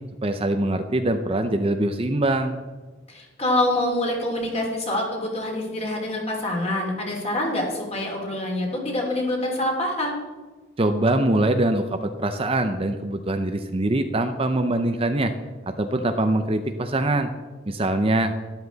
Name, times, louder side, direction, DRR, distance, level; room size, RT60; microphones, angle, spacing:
voice 1, 0.2-2.6 10.8-15.3 15.7-17.3 17.7-18.3, right 1 dB, 25° right, 7 dB, 0.6 m, -23 dB
voice 2, 3.1-10.2, left 1 dB, 30° left, 0 dB, 3.1 m, -26 dB
12.5 x 12.0 x 4.0 m, 1.3 s
head